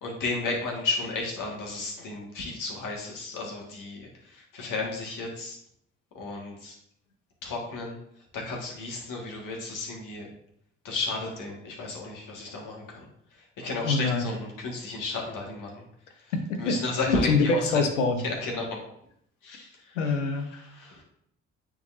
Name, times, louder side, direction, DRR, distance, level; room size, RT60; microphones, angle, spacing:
voice 1, 0.0-5.6 6.2-6.8 7.4-8.0 8.3-10.3 10.8-15.9 16.1-16.3 16.6-17.7 18.2-18.8 19.4-20.2 20.5-21.0, left 3 dB, 60° left, 0 dB, 1.8 m, -33 dB
voice 2, 13.8-14.3 16.3-16.8 17.0-17.5 17.7-18.3 19.9-20.6, left 4 dB, 90° left, 6 dB, 0.7 m, -25 dB
9.2 x 3.8 x 2.7 m, 0.71 s
hypercardioid pair, 50°, 35 cm